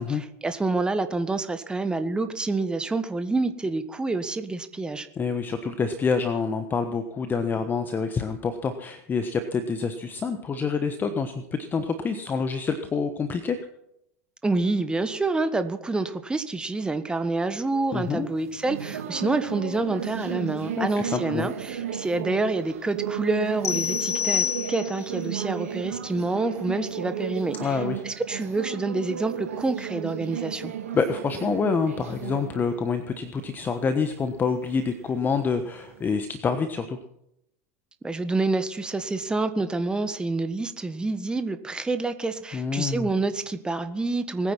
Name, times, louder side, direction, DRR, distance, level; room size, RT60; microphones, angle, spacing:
voice 1, 0.0-5.1 14.4-27.8 28.0-30.7 38.0-44.5, right 3 dB, 10° right, 10 dB, 1.4 m, -27 dB
voice 2, 5.2-13.6 17.9-18.3 20.8-21.5 27.6-28.0 30.9-37.0 42.5-43.1, left 5 dB, 25° left, 9 dB, 1.3 m, -27 dB
sound 1, 17.7-36.1, right 8 dB, 70° right, 2.6 m, -35 dB
sound 2, 23.6-25.2, left 9 dB, 75° left, 0.5 m, -27 dB
21.0 x 9.7 x 6.0 m, 0.80 s
hypercardioid pair, 85°, 8 cm